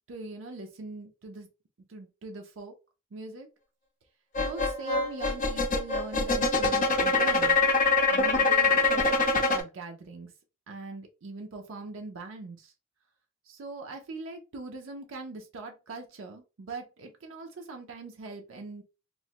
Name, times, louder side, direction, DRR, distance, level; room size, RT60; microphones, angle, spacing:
voice 1, 0.1-1.5 1.9-2.7 3.1-3.5 4.4-7.7 8.1-10.3 10.7-12.7 13.5-18.8, right 3 dB, 75° right, 3 dB, 0.5 m, -41 dB
sound 1, 4.3-9.6, left 3 dB, 40° left, 0.5 m, -24 dB
3.0 x 2.1 x 2.8 m, 0.30 s
head